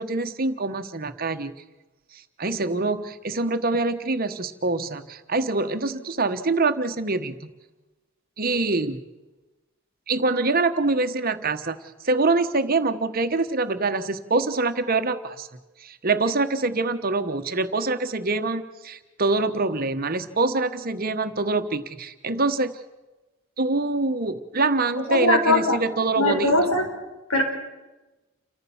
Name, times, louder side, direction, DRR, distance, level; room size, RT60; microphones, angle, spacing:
voice 1, 0.0-1.5 2.4-7.5 8.4-9.0 10.1-11.8 12.0-15.5 15.8-22.7 23.6-26.5, right 3 dB, 45° right, 8 dB, 1.2 m, -25 dB
voice 2, 25.1-25.8 26.2-26.9 27.3-27.4, left 2 dB, 90° left, 2 dB, 5.3 m, -20 dB
29.0 x 14.5 x 7.2 m, 1.1 s
head